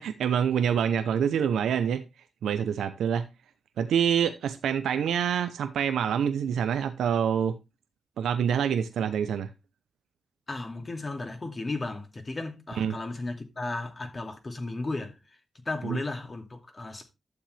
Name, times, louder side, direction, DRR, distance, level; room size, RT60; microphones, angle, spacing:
voice 1, 0.0-2.0 2.4-3.3 3.8-7.6 8.2-9.5 12.8-13.0 15.8-16.0, right 8 dB, 85° right, 0.7 m, -26 dB
voice 2, 10.5-15.1 15.5-17.1, left 2 dB, 40° left, 2.5 m, -35 dB
11.5 x 7.3 x 3.3 m
supercardioid pair, 40°, 0 cm